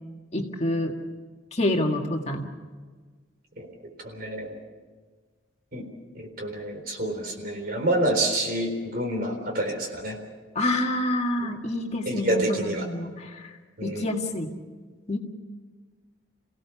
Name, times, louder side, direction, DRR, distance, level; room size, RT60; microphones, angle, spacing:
voice 1, 0.3-1.0 1.5-2.5 10.6-14.5 15.1-15.2, left 1 dB, 35° left, 2 dB, 1.9 m, -27 dB
voice 2, 4.0-4.5 5.7-5.8 6.1-10.2 11.4-11.5 12.1-12.9 13.8-14.0, right 1 dB, 45° right, 3 dB, 4.0 m, -28 dB
28.5 x 17.0 x 7.1 m, 1.5 s
head